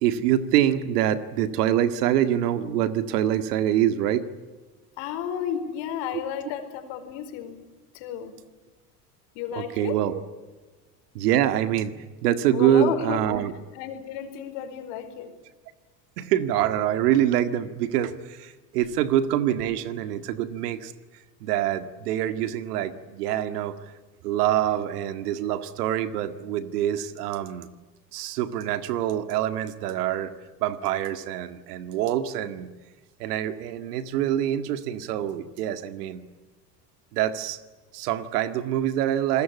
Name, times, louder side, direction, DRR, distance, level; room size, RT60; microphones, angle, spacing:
voice 1, 0.0-4.2 9.6-10.2 11.2-11.9 12.2-13.5 16.2-20.9 21.4-23.8 24.2-27.7 28.1-30.3 30.6-32.7 33.2-36.2 37.1-37.6 37.9-39.4, right 11 dB, 80° right, 11 dB, 1.9 m, -25 dB
voice 2, 5.0-7.6 7.9-8.4 9.3-10.0 12.5-13.2 13.7-15.3, left 9 dB, 65° left, 7 dB, 4.9 m, -32 dB
27.5 x 20.0 x 8.4 m, 1.3 s
hypercardioid pair, 85°, 46 cm